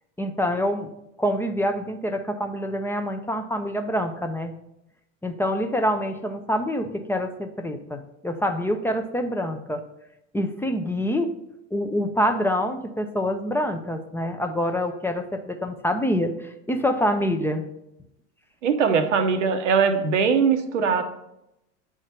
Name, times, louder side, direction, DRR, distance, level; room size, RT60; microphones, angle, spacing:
voice 1, 0.2-0.9 1.2-4.6 5.2-9.8 10.3-11.3 11.7-17.6, equal, 5° left, 5 dB, 0.6 m, -26 dB
voice 2, 18.6-21.0, right 6 dB, 90° right, 6 dB, 0.9 m, -21 dB
8.0 x 3.6 x 4.3 m, 0.85 s
hypercardioid pair, 95°, 36 cm